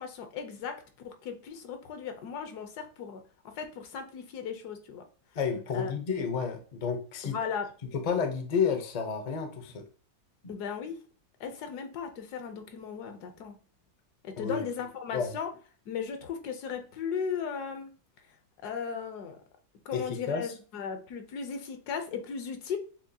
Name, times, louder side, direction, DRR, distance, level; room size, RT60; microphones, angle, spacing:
voice 1, 0.0-5.0 5.7-5.9 7.2-7.7 10.5-11.0 11.4-13.6 14.2-15.5 15.9-17.9 18.6-19.4 19.8-22.8, left 6 dB, 80° left, 7 dB, 1.3 m, -37 dB
voice 2, 5.3-7.4 7.9-9.8 14.4-14.6 15.1-15.3 19.9-20.5, left 6 dB, 50° left, 5 dB, 0.4 m, -31 dB
7.2 x 2.7 x 2.3 m, 0.40 s
omnidirectional pair, 1.7 m